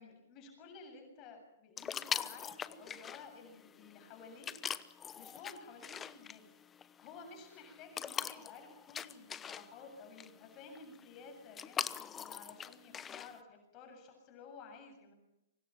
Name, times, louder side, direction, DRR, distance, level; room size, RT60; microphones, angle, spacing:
voice 1, 0.0-4.5 5.2-6.5 6.8-15.1, left 5 dB, 35° left, 4 dB, 7.7 m, -53 dB
sound 1, 1.8-13.4, left 8 dB, 20° left, 1.0 m, -43 dB
27.5 x 25.0 x 5.9 m, 0.88 s
hypercardioid pair, 120°, 0 cm